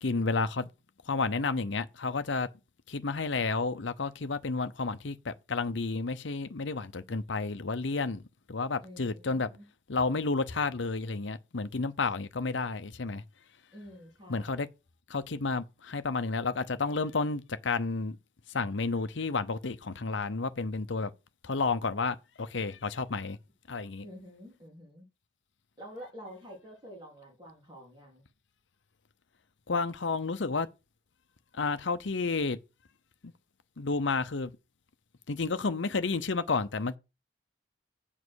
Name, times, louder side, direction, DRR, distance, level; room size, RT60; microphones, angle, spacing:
voice 1, 0.0-0.7 1.1-2.5 2.9-8.2 8.5-9.5 9.9-13.2 14.3-14.7 15.1-18.2 18.5-21.1 21.4-23.4 23.7-24.0 29.7-30.7 31.6-32.6 33.2-33.3 33.8-34.5 35.3-37.0, left 4 dB, 70° left, 0.8 m, -31 dB
voice 2, 8.8-9.7 13.7-14.7 24.0-25.1 25.8-28.3, equal, 25° right, 3.5 m, -48 dB
7.5 x 5.6 x 6.3 m
head